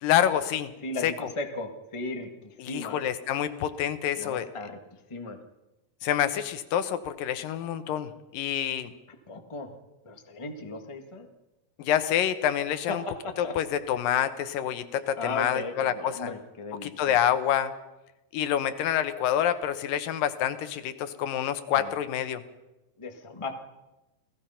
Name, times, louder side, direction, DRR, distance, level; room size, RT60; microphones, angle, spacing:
voice 1, 0.0-0.7 1.0-1.1 2.6-4.5 6.0-8.9 11.8-13.0 13.4-16.3 16.7-17.7 18.3-22.4, left 10 dB, 75° left, 11 dB, 2.7 m, -27 dB
voice 2, 0.8-3.0 4.2-4.8 5.1-5.4 9.3-9.7 10.0-11.3 12.9-13.5 15.2-17.2 21.8-21.9 23.0-23.5, left 3 dB, 35° left, 4 dB, 0.4 m, -36 dB
29.0 x 18.5 x 5.7 m, 1.0 s
omnidirectional pair, 4.1 m